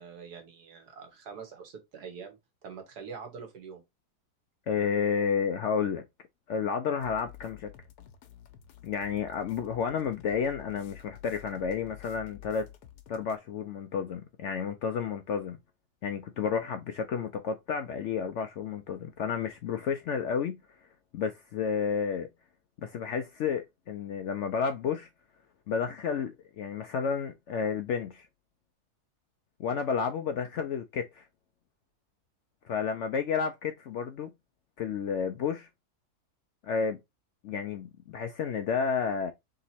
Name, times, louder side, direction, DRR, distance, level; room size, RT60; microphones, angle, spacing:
voice 1, 0.0-3.8, right 6 dB, 80° right, 1.8 m, -44 dB
voice 2, 4.7-6.0 6.5-7.7 8.8-12.7 13.1-15.6 16.0-20.6 21.1-22.3 22.8-25.1 25.7-28.3 29.6-31.3 32.6-34.3 34.8-35.7 36.6-37.0 37.4-39.3, left 6 dB, 70° left, 0.7 m, -31 dB
sound 1, 7.0-13.4, left 12 dB, 90° left, 1.3 m, -51 dB
3.7 x 3.0 x 4.1 m
omnidirectional pair, 1.7 m